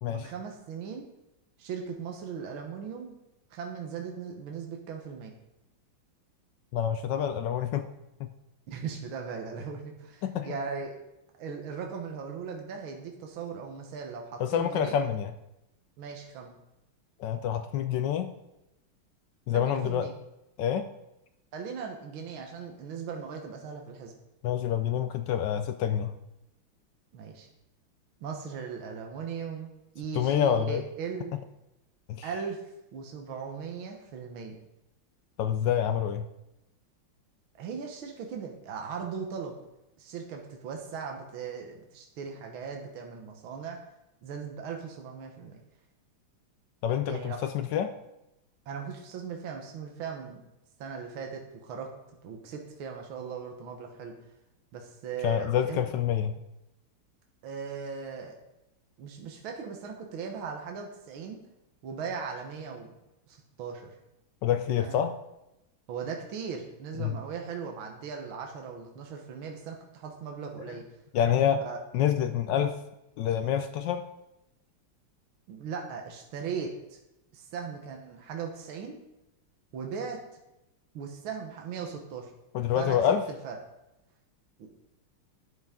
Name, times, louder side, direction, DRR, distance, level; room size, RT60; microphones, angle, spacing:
voice 1, 0.1-1.1 1.6-3.2 3.5-5.3 8.7-11.0 11.4-15.0 16.0-16.5 19.5-20.1 21.5-24.1 27.1-27.5 28.2-31.3 32.2-32.6 32.9-34.6 37.6-39.6 40.0-43.8 44.2-45.6 47.1-47.5 48.7-50.4 50.8-51.9 52.2-54.1 54.7-55.8 57.4-58.4 59.0-61.4 61.8-62.9 63.3-64.0 64.8-65.0 65.9-70.8 71.7-71.8 75.5-77.0 77.3-79.0 79.7-80.2 80.9-82.3 82.7-83.0 83.4-83.6 84.6-84.7, right 6 dB, 75° right, 2 dB, 1.9 m, -38 dB
voice 2, 6.7-7.9 8.2-8.3 10.2-10.5 14.4-15.3 17.2-18.3 19.5-20.1 20.6-20.9 24.4-26.1 30.1-30.8 32.1-32.3 35.4-36.2 46.8-47.9 55.2-56.3 64.4-65.2 67.0-67.2 71.1-71.6 71.9-72.8 73.2-74.0 82.5-83.2, left 9 dB, 75° left, 10 dB, 1.0 m, -27 dB
11.5 x 8.0 x 3.6 m, 0.91 s
omnidirectional pair, 2.3 m